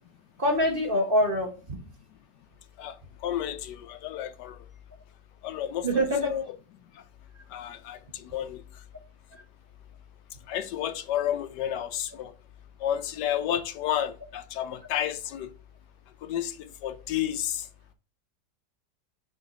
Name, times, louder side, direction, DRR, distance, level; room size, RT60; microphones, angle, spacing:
voice 1, 0.4-1.8 5.8-6.3 9.3-9.4, equal, 40° right, 1.0 m, -25 dB
voice 2, 2.8-4.7 5.4-5.9 6.2-6.4 6.9-7.0 7.5-8.8 10.5-12.3 12.8-15.5 16.2-17.7, left 11 dB, 75° left, 1.2 m, -31 dB
6.4 x 3.9 x 4.1 m
omnidirectional pair, 1.9 m